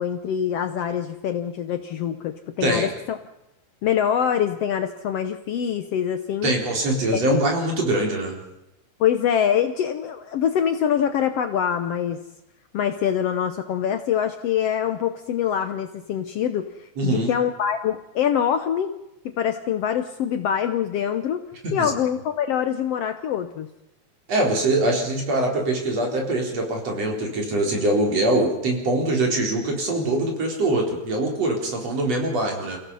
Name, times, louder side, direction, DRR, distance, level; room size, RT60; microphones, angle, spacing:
voice 1, 0.0-3.2 3.8-6.5 7.1-7.4 9.0-12.2 12.7-18.9 19.3-21.4 21.7-23.7, left 9 dB, 65° left, 8 dB, 1.7 m, -24 dB
voice 2, 6.4-8.4 17.0-17.3 21.6-22.0 24.3-32.8, right 1 dB, 55° right, 1 dB, 5.2 m, -23 dB
29.0 x 16.5 x 5.6 m, 0.90 s
omnidirectional pair, 3.5 m